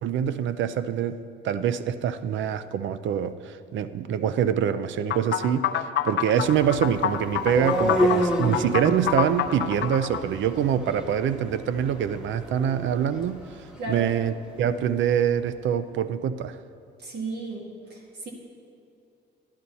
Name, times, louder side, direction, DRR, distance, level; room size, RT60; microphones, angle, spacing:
voice 1, 0.0-1.2 1.4-5.7 6.0-13.4 13.9-16.6, right 9 dB, 75° right, 13 dB, 0.5 m, -25 dB
sound 1, 5.1-10.2, left 10 dB, 70° left, 0.6 m, -27 dB
sound 2, 6.4-14.4, equal, 5° right, 1.4 m, -30 dB
voice 2, 17.0-18.3, right 2 dB, 55° right, -1 dB, 2.3 m, -34 dB
11.5 x 11.5 x 4.1 m, 2.6 s
cardioid pair, 90°, 20 cm